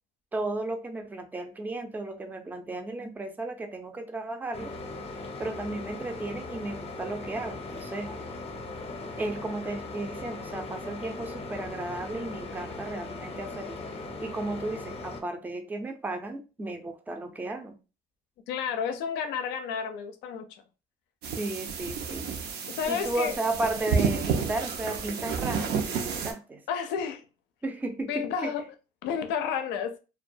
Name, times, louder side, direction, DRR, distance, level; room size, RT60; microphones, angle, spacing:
voice 1, 0.3-4.7 5.4-8.2 9.2-13.8 14.2-17.8 21.4-22.3 22.8-26.6 27.6-28.5, right 2 dB, 10° right, 0.4 m, -34 dB
sound 1, 4.5-15.2, left 3 dB, 35° left, 0.6 m, -39 dB
voice 2, 18.5-20.6 22.7-23.3 26.7-27.2 28.1-28.6 29.0-30.0, left 7 dB, 90° left, 0.4 m, -31 dB
sound 2, 21.2-26.3, right 6 dB, 70° right, 0.5 m, -30 dB
2.2 x 2.2 x 2.5 m
cardioid pair, 110°, 17 cm